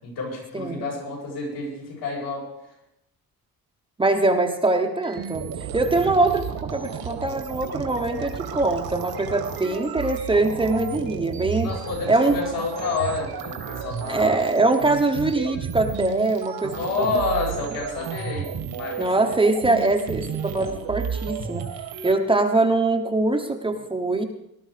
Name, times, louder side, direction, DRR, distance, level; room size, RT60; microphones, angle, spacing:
voice 1, 0.0-2.5 11.6-14.7 15.1-15.2 16.7-19.4, left 3 dB, 80° left, -2 dB, 7.5 m, -29 dB
voice 2, 0.5-0.9 4.0-11.7 12.1-12.4 14.1-17.1 19.0-21.7 22.0-24.3, right 2 dB, 15° right, 4 dB, 1.0 m, -23 dB
sound 1, 5.0-22.1, right 7 dB, 80° right, 2.3 m, -33 dB
19.5 x 12.5 x 5.0 m, 0.82 s
cardioid pair, 170°, 37 cm